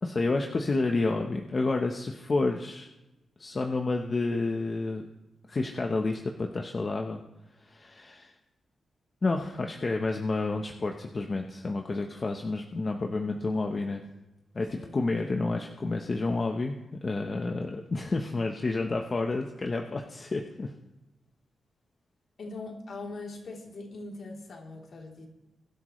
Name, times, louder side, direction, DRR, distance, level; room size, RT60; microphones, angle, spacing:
voice 1, 0.0-2.9 3.4-5.0 5.5-7.2 7.6-8.3 9.2-14.0 14.5-20.7, left 3 dB, 35° left, 2 dB, 1.0 m, -30 dB
voice 2, 14.7-15.0 22.4-25.3, left 3 dB, 60° left, -1 dB, 3.4 m, -41 dB
22.5 x 12.0 x 3.2 m, 1.0 s
wide cardioid pair, 130°, 0 cm